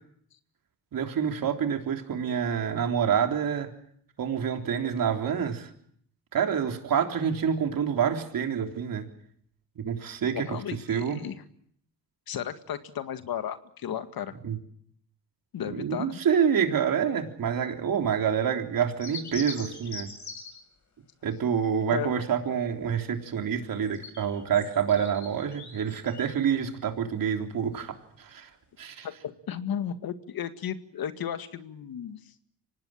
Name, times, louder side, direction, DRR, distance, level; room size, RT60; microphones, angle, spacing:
voice 1, 0.9-3.7 4.2-5.7 6.3-9.1 9.8-10.6 10.9-11.2 14.4-14.6 15.7-20.1 21.2-28.5 28.8-29.1, right 7 dB, 60° right, 5 dB, 3.6 m, -27 dB
voice 2, 10.3-11.4 12.3-14.3 15.5-16.2 21.9-22.2 29.0-32.2, left 9 dB, 65° left, 10 dB, 2.0 m, -34 dB
sound 1, 19.0-20.6 23.7-26.4, left 4 dB, 45° left, 7.4 m, -42 dB
25.0 x 18.5 x 8.9 m, 0.67 s
cardioid pair, 80°, 38 cm